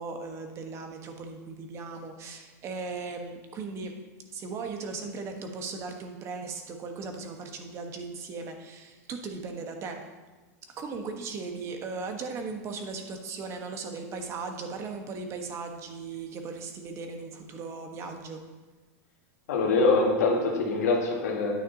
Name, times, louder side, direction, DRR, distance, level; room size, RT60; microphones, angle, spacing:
voice 1, 0.0-3.9 4.3-10.1 10.8-18.4, right 4 dB, 35° right, 4 dB, 1.2 m, -37 dB
voice 2, 19.5-21.5, left 3 dB, 90° left, 0 dB, 1.8 m, -24 dB
9.3 x 9.3 x 2.8 m, 1.2 s
supercardioid pair, 130°, 8 cm